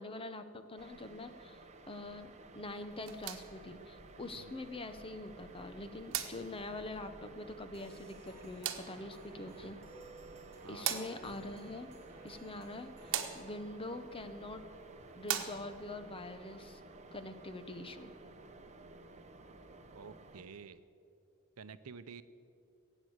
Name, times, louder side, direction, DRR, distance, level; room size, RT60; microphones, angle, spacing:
voice 1, 0.0-1.6 1.9-9.8 10.7-11.9 12.2-14.6 15.2-16.8 17.1-18.1, left 2 dB, 25° left, 9 dB, 0.9 m, -44 dB
sound 1, 0.8-20.4, right 3 dB, 30° right, 1.0 m, -55 dB
sound 2, 2.9-16.0, right 10 dB, 60° right, 1.2 m, -44 dB
sound 3, 7.7-13.3, right 2 dB, 10° right, 3.4 m, -56 dB
voice 2, 10.6-11.1 19.9-20.8 21.6-22.2, right 5 dB, 75° right, 13 dB, 0.7 m, -50 dB
16.5 x 8.9 x 8.0 m, 2.6 s
head